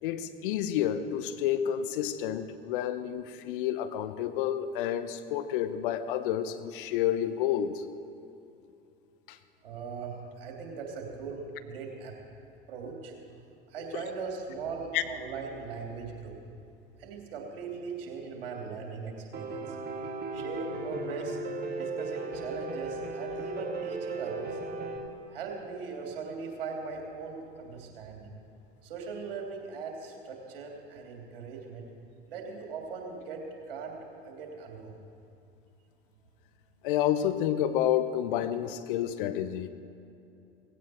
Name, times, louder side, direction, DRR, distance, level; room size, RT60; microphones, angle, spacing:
voice 1, 0.0-7.8 9.3-9.4 14.9-15.0 36.8-39.7, left 10 dB, 60° left, 11 dB, 0.9 m, -29 dB
voice 2, 9.6-12.1 12.7-13.1 13.7-16.3 17.0-19.9 20.3-21.4 21.8-24.6 25.1-28.4 28.8-31.8 32.3-34.0 34.2-35.0, right 5 dB, 70° right, 1 dB, 3.0 m, -39 dB
Piano, 19.3-25.0, right 3 dB, 35° right, 2.0 m, -36 dB
18.0 x 16.5 x 4.4 m, 2.6 s
figure-of-eight pair, 75°, 30 cm